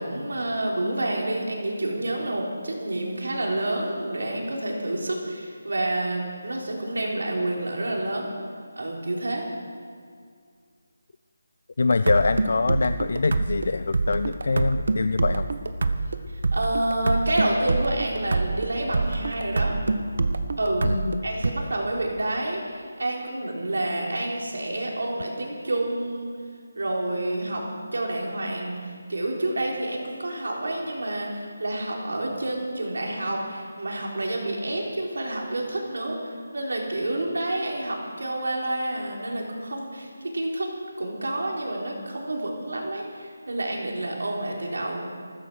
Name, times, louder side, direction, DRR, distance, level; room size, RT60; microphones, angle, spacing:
voice 1, 0.0-8.3 8.7-9.5 16.3-19.8 20.6-20.9 21.2-26.3 26.8-27.7 27.9-45.1, right 1 dB, 80° right, -1 dB, 4.1 m, -29 dB
voice 2, 11.8-15.5 20.8-21.2, left 3 dB, 50° left, 12 dB, 0.4 m, -24 dB
sound 1, 11.9-21.5, right 3 dB, 55° right, 1.0 m, -26 dB
15.0 x 13.5 x 6.4 m, 2.1 s
figure-of-eight pair, 175°, 0 cm